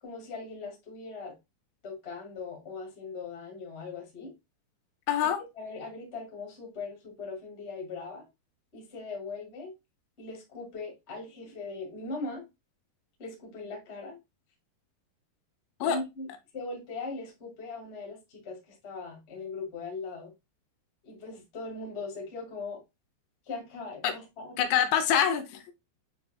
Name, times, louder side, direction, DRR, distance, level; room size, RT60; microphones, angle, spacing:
voice 1, 0.0-1.3 1.8-4.3 5.2-5.3 5.5-8.2 8.7-9.7 10.2-12.4 13.2-14.2 15.8-16.3 16.5-18.6 18.8-20.3 21.0-22.8 23.5-24.5, left 3 dB, 65° left, -1 dB, 0.6 m, -40 dB
voice 2, 5.1-5.4 15.8-16.0 24.0-24.1 24.6-25.7, left 9 dB, 85° left, 7 dB, 2.8 m, -25 dB
7.6 x 2.7 x 2.2 m, 0.22 s
omnidirectional pair, 5.0 m